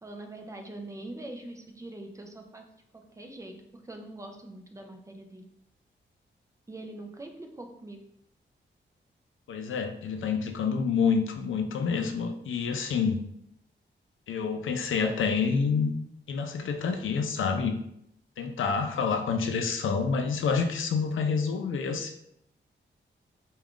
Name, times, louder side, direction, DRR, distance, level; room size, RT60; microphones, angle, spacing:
voice 1, 0.0-2.6 2.9-5.4 6.7-8.0, right 1 dB, 15° right, 3 dB, 0.4 m, -43 dB
voice 2, 9.5-13.2 14.3-15.9 16.3-17.8 18.4-22.1, left 5 dB, 85° left, 5 dB, 0.4 m, -28 dB
3.5 x 2.3 x 3.5 m, 0.74 s
wide cardioid pair, 160°, 20 cm